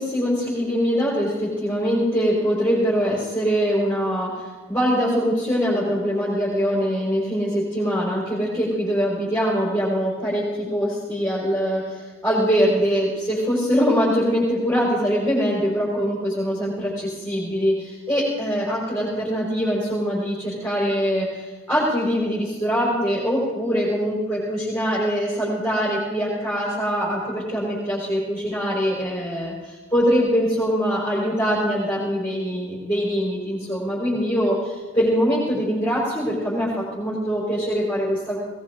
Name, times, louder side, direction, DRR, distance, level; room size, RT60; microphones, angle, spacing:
voice 1, 0.0-38.4, equal, 10° left, -9 dB, 4.8 m, -23 dB
20.0 x 19.0 x 3.8 m, 1.3 s
head